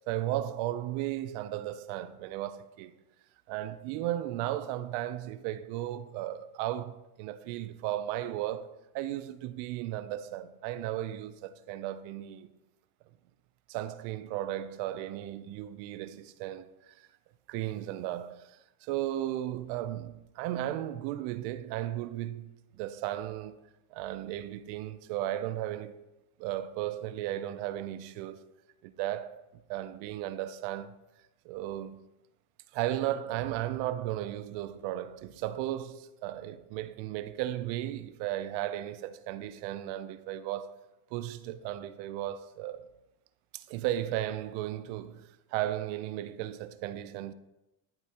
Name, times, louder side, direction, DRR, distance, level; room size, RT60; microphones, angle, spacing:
voice 1, 0.1-2.9 3.5-12.5 13.7-16.7 17.0-17.1 17.5-23.6 23.9-25.9 26.4-28.4 28.8-29.4 29.7-30.9 31.4-32.0 32.7-40.8 41.1-42.8 43.5-47.3, right 13 dB, 70° right, 0.7 m, -35 dB
13.5 x 8.2 x 3.0 m
supercardioid pair, 120°, 44 cm